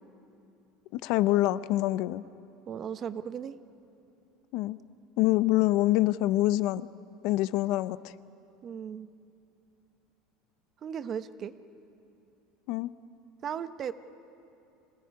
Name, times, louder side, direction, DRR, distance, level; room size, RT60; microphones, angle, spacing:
voice 1, 0.9-2.2 4.5-4.8 5.2-6.9 7.2-8.1 12.7-12.9, left 16 dB, 65° left, 16 dB, 0.5 m, -25 dB
voice 2, 2.7-3.5 8.6-9.1 10.8-11.5 13.4-13.9, right 8 dB, 35° right, 12 dB, 0.7 m, -36 dB
25.5 x 17.5 x 9.6 m, 2.7 s
cardioid pair, 140°, 0 cm